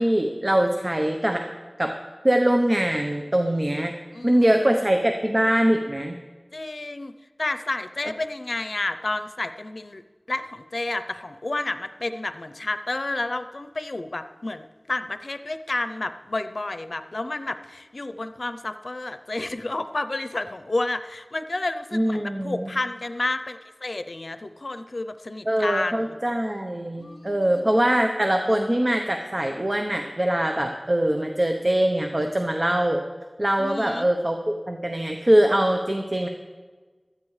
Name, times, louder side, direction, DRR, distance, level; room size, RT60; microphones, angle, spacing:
voice 1, 0.0-1.4 1.8-1.9 2.2-3.9 4.2-6.2 21.9-22.7 25.5-33.0 33.4-34.4 34.7-36.3, right 1 dB, 40° right, 4 dB, 0.9 m, -22 dB
voice 2, 4.1-4.5 6.5-7.1 7.4-10.0 10.3-26.2 27.0-27.7 33.6-34.1, left 2 dB, 80° left, 10 dB, 0.5 m, -30 dB
16.0 x 13.0 x 3.3 m, 1.4 s
wide cardioid pair, 40°, 0 cm